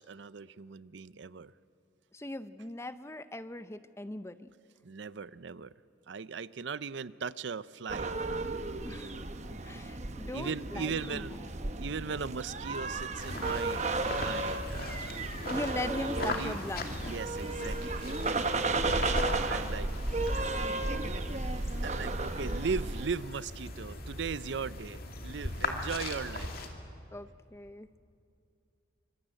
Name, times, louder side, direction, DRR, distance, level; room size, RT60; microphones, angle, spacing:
voice 1, 0.0-1.5 4.8-5.7 6.1-8.2 10.3-11.5 11.8-15.3 16.2-16.6 17.0-18.4 19.4-19.9 21.8-26.7, right 5 dB, 65° right, 17 dB, 0.5 m, -38 dB
voice 2, 2.1-4.5 8.8-9.2 9.5-11.2 15.5-17.2 18.9-19.2 20.3-20.8 22.0-22.5 25.8-25.9 27.1-27.9, left 1 dB, 15° left, 12 dB, 0.6 m, -40 dB
sound 1, 7.9-23.1, right 2 dB, 35° right, 1.0 m, -34 dB
sound 2, 13.2-26.7, left 2 dB, 50° left, 2.5 m, -39 dB
25.0 x 25.0 x 8.9 m, 2.5 s
head